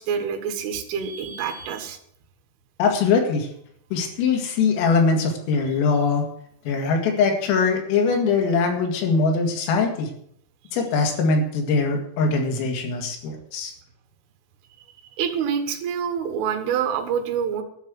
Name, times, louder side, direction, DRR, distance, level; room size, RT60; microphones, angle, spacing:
voice 1, 0.0-2.0 15.2-17.6, right 7 dB, 75° right, 5 dB, 4.0 m, -26 dB
voice 2, 2.8-3.5 3.9-6.3 6.7-10.1 10.7-13.7, left 4 dB, 80° left, 2 dB, 4.8 m, -22 dB
12.0 x 6.6 x 9.0 m, 0.68 s
omnidirectional pair, 5.8 m